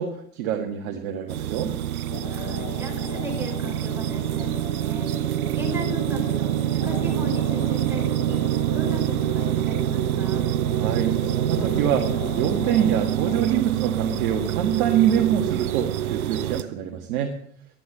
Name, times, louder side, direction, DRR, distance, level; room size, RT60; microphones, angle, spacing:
voice 1, 0.0-1.7 10.7-17.3, right 9 dB, 70° right, 3 dB, 1.8 m, -25 dB
sound 1, 1.3-16.6, right 12 dB, 85° right, 0.7 m, -26 dB
sound 2, 2.1-13.6, left 9 dB, 50° left, 1.3 m, -38 dB
voice 2, 2.3-10.5, right 1 dB, 5° right, -1 dB, 5.2 m, -37 dB
12.0 x 10.0 x 7.5 m, 0.62 s
hypercardioid pair, 85°, 43 cm